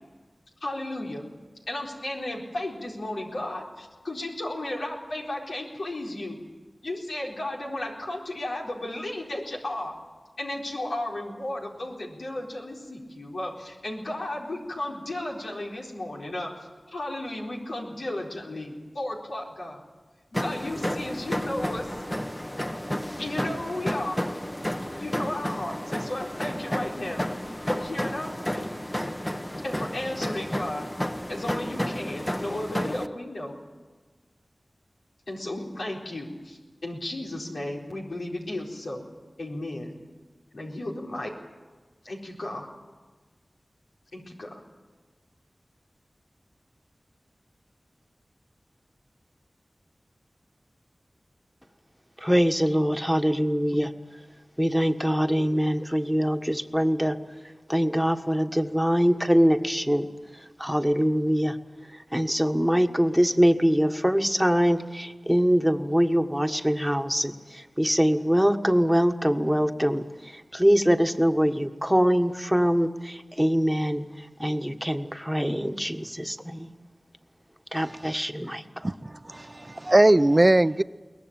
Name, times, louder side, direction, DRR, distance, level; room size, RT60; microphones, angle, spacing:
voice 1, 0.6-1.2 1.7-6.4 6.8-9.9 10.4-16.5 16.9-19.8 20.3-22.0 23.2-24.2 24.9-27.3 27.7-28.7 29.6-30.9 31.3-33.6 35.3-39.1 39.4-40.0 40.5-41.3 42.0-42.7 44.1-44.6, left 1 dB, 90° left, -2 dB, 4.3 m, -34 dB
sound 1, 20.3-33.1, equal, 15° left, 1.1 m, -32 dB
voice 2, 52.2-53.9 54.6-60.1 60.3-61.6 61.9-76.7 77.7-78.9, equal, 5° right, 7 dB, 1.5 m, -24 dB
voice 3, 78.8-80.8, right 1 dB, 35° right, 14 dB, 0.7 m, -20 dB
22.5 x 19.0 x 9.0 m, 1.4 s
cardioid pair, 40°, 0 cm